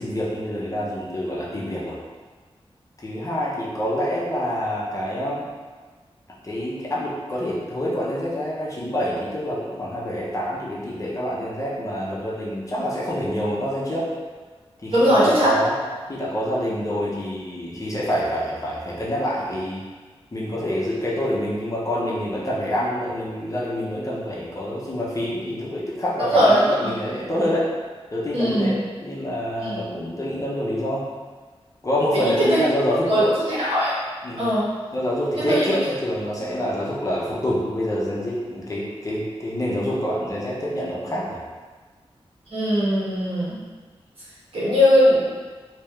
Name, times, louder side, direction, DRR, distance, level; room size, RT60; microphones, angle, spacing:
voice 1, 0.0-2.0 3.0-5.5 6.4-14.1 14.8-15.7 16.1-19.8 20.3-27.7 28.1-31.1 31.8-33.3 34.2-34.5 34.9-41.4, equal, 35° left, -6 dB, 0.8 m, -26 dB
voice 2, 14.9-15.5 26.2-26.9 28.3-28.7 29.6-29.8 32.1-32.6 33.1-33.2 33.5-34.0 34.4-34.7 35.4-35.8 36.3-36.4 42.5-43.6 44.5-45.3, equal, 65° right, -9 dB, 1.5 m, -19 dB
3.4 x 2.9 x 3.4 m, 1.4 s
wide cardioid pair, 115°, 10 cm